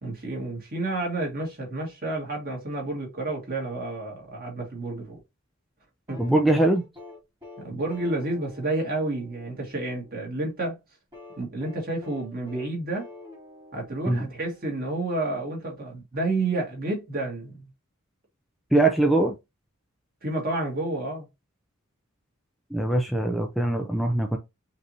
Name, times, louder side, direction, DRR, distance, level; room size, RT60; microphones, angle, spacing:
voice 1, 0.0-5.2 6.1-6.2 7.6-10.8 11.4-13.1 13.7-17.7 20.2-21.3, right 2 dB, 45° right, 2.1 m, -30 dB
sound 1, 6.1-10.2 11.1-14.7 16.1-16.2, left 2 dB, 20° right, 2.1 m, -46 dB
voice 2, 6.2-6.8 14.1-14.2 18.7-19.4 22.7-24.4, right 2 dB, ahead, 0.5 m, -22 dB
5.3 x 2.7 x 2.9 m
head